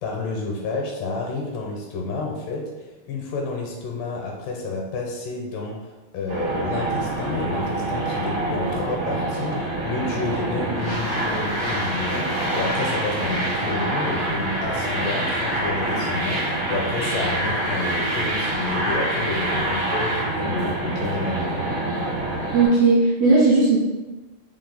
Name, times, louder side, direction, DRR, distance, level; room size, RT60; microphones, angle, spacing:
voice 1, 0.0-21.6, left 3 dB, 80° left, 0 dB, 2.2 m, -30 dB
sound 1, 6.3-22.7, right 1 dB, 55° right, 1.4 m, -26 dB
voice 2, 22.5-23.8, right 3 dB, 70° right, -6 dB, 1.9 m, -16 dB
5.4 x 2.5 x 3.9 m, 1.2 s
omnidirectional pair, 4.0 m